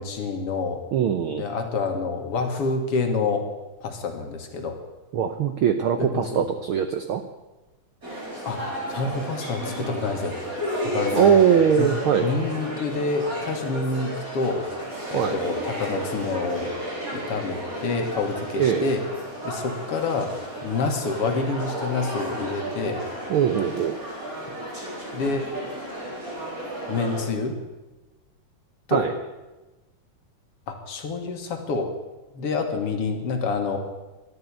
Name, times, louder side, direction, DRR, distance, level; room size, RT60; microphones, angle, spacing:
voice 1, 0.0-0.8 1.3-3.4 3.8-4.8 6.0-6.4 8.5-10.6 10.8-11.4 11.8-11.9 12.2-14.7 15.1-16.7 17.1-19.0 19.4-20.3 20.6-23.0 25.1-25.5 26.9-27.6 28.9-29.1 30.7-31.9 32.3-33.8, left 4 dB, 55° left, 4 dB, 2.3 m, -27 dB
voice 2, 0.9-1.4 5.1-7.2 11.1-12.3 15.1-15.4 18.5-18.9 23.3-24.0 28.9-29.1, right 8 dB, 85° right, 8 dB, 1.1 m, -21 dB
sound 1, 8.0-27.2, equal, 30° right, 4.7 m, -33 dB
12.5 x 11.0 x 9.5 m, 1.1 s
omnidirectional pair, 3.4 m